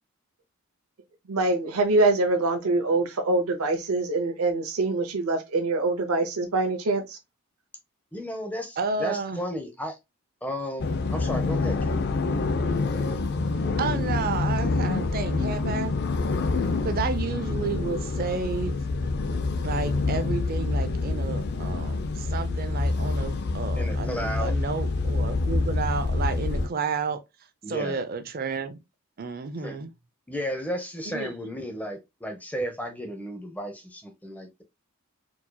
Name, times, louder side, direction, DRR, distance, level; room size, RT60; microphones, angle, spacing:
voice 1, 1.3-7.2 31.1-31.3, right 2 dB, 75° right, 0.7 m, -24 dB
voice 2, 8.1-10.0 10.4-12.0 23.8-24.5 27.6-28.0 29.6-29.8 30.3-34.6, equal, 5° left, 0.7 m, -34 dB
voice 3, 8.8-9.4 13.8-15.9 16.8-18.8 19.6-27.2 27.7-28.8 29.2-29.9, right 4 dB, 40° right, 0.4 m, -31 dB
sound 1, 10.8-26.7, left 3 dB, 45° left, 0.4 m, -27 dB
4.6 x 2.8 x 2.2 m
head